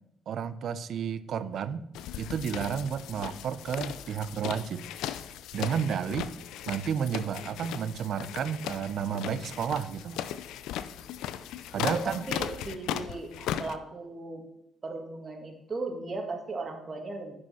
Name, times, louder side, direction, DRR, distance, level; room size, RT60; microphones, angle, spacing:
voice 1, 0.3-1.9 2.2-4.8 5.5-6.3 6.7-10.2 11.7-12.2, right 7 dB, 65° right, 15 dB, 0.6 m, -31 dB
sound 1, 1.9-13.8, left 11 dB, 90° left, 0.5 m, -37 dB
voice 2, 12.0-14.4 14.8-17.3, right 3 dB, 35° right, 3 dB, 2.0 m, -37 dB
9.4 x 5.4 x 5.6 m, 0.80 s
cardioid pair, 90°, 0 cm